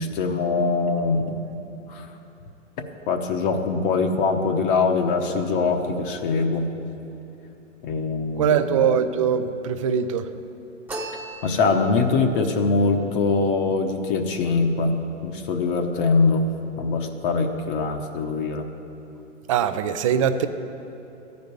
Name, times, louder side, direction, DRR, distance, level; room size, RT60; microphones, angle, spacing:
voice 1, 0.0-1.5 1.9-2.1 3.1-6.7 7.8-8.6 11.4-14.9 15.2-16.5 16.8-18.7, left 4 dB, 45° left, 4 dB, 1.0 m, -23 dB
voice 2, 8.3-10.3 19.5-20.5, right 8 dB, 30° right, 11 dB, 0.3 m, -22 dB
sound 1, 10.9-12.1, right 2 dB, 5° right, 0.9 m, -36 dB
13.5 x 5.3 x 9.3 m, 2.9 s
hypercardioid pair, 130°, 38 cm